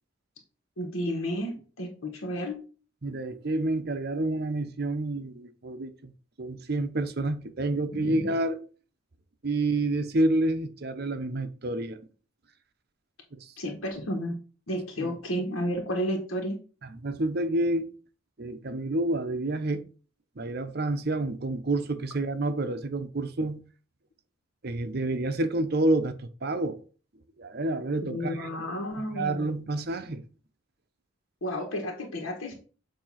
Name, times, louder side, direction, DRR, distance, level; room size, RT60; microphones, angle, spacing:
voice 1, 0.8-2.6 7.9-8.3 13.6-14.4 14.7-16.6 28.0-29.5 31.4-32.5, equal, 85° left, 1.3 m, -32 dB
voice 2, 3.0-6.1 6.4-8.6 9.4-12.0 13.3-13.5 15.0-15.1 16.8-17.9 18.4-19.8 20.4-23.6 24.6-26.8 27.4-28.5 29.0-30.2, right 2 dB, 50° right, 0.7 m, -29 dB
7.2 x 2.8 x 5.7 m
head